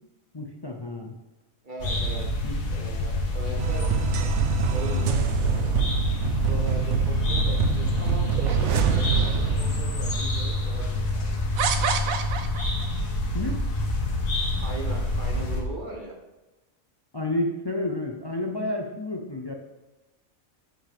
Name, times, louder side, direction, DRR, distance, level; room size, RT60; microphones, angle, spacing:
voice 1, 0.3-1.2 2.4-2.6 13.3-13.6 17.1-19.5, left 1 dB, 45° left, 2 dB, 0.3 m, -30 dB
voice 2, 1.6-3.9 4.7-5.8 6.3-11.5 14.6-16.1, right 1 dB, 40° right, 1 dB, 1.2 m, -39 dB
sound 1, 1.8-15.6, left 2 dB, 85° left, 1.7 m, -27 dB
sound 2, 3.6-11.1, right 8 dB, 65° right, 0.9 m, -27 dB
sound 3, 8.3-9.2 10.0-10.1 11.6-12.9, right 7 dB, 85° right, 1.1 m, -29 dB
7.7 x 7.2 x 3.5 m, 1.1 s
omnidirectional pair, 1.4 m